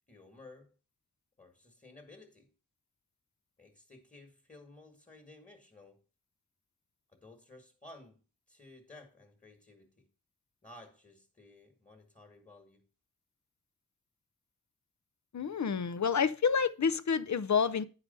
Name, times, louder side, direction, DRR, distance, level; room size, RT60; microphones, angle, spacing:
voice 1, 0.1-0.7 1.4-2.5 3.6-6.0 7.1-8.2 8.5-10.1 10.6-12.9, left 2 dB, 20° left, 1.6 m, -55 dB
voice 2, 15.3-17.9, left 6 dB, 50° left, 0.6 m, -29 dB
9.6 x 4.9 x 5.3 m
wide cardioid pair, 70°, 37 cm